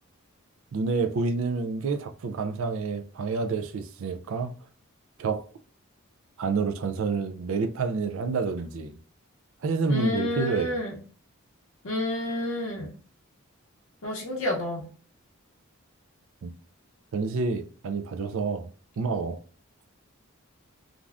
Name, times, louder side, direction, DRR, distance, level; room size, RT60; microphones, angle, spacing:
voice 1, 0.7-4.5 5.2-5.4 6.4-9.0 9.6-10.7 16.4-16.5 17.1-18.7 19.0-19.4, right 4 dB, 65° right, 0.4 m, -28 dB
voice 2, 9.9-11.0 11.8-12.9 14.0-14.8, left 1 dB, 65° left, 0.6 m, -29 dB
3.3 x 2.5 x 2.3 m
head